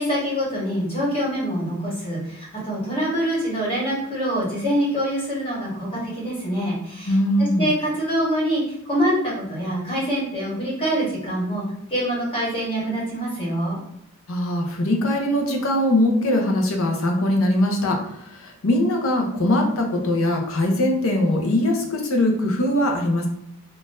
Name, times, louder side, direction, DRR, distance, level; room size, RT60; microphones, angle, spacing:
voice 1, 0.0-8.6 8.9-11.6 11.9-13.8, equal, 25° left, -7 dB, 1.3 m, -25 dB
voice 2, 7.1-7.7 14.3-23.3, left 1 dB, 65° left, 2 dB, 0.7 m, -21 dB
3.7 x 2.5 x 2.5 m, 0.76 s
head